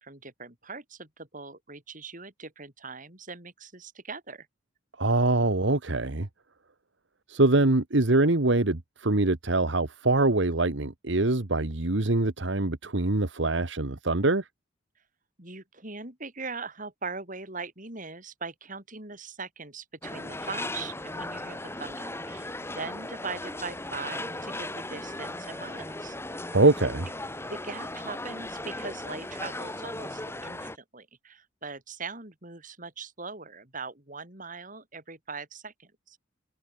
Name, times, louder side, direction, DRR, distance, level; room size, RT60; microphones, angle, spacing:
voice 1, 0.0-4.5 15.4-26.1 26.4-26.5 27.5-36.2, right 4 dB, 45° right, 6.8 m, -41 dB
voice 2, 5.0-6.3 7.3-14.5 26.5-27.1, right 2 dB, 65° right, 1.5 m, -24 dB
sound 1, 20.0-30.8, left 2 dB, 15° left, 5.0 m, -37 dB
head